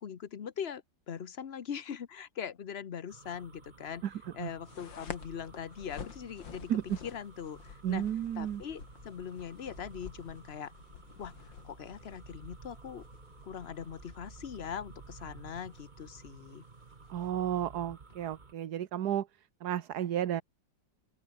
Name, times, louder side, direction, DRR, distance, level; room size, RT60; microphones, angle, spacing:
voice 1, 0.0-4.0 4.3-6.7 7.0-8.1 8.4-10.7 11.2-11.3 11.6-13.0 13.4-16.6, left 8 dB, 45° left, 1.0 m, -41 dB
sound 1, 3.1-18.5, right 4 dB, 25° right, 1.5 m, -53 dB
sound 2, 4.6-18.1, left 7 dB, 85° left, 2.7 m, -51 dB
voice 2, 7.8-8.6 17.1-19.3 19.6-20.4, right 10 dB, 60° right, 1.5 m, -32 dB
open air
omnidirectional pair, 2.0 m